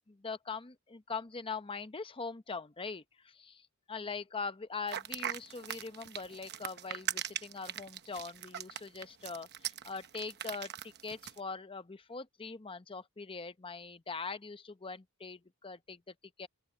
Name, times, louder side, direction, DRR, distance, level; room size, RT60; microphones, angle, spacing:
voice 1, 0.1-16.5, left 4 dB, 25° left, 0.7 m, -42 dB
sound 1, 4.9-11.4, right 10 dB, 50° right, 1.0 m, -40 dB
open air
head